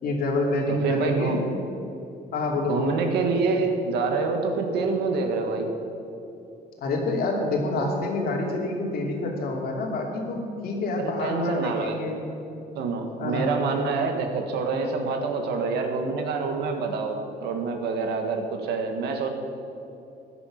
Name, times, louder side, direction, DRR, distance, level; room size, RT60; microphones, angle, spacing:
voice 1, 0.0-1.5 2.3-3.0 6.8-12.2 13.2-13.5, left 2 dB, 65° left, 0 dB, 2.9 m, -27 dB
voice 2, 0.7-1.4 2.7-5.7 11.0-12.0 12.8-19.3, right 4 dB, 80° right, 4 dB, 1.9 m, -26 dB
15.5 x 9.9 x 6.1 m, 2.8 s
cardioid pair, 110°, 17 cm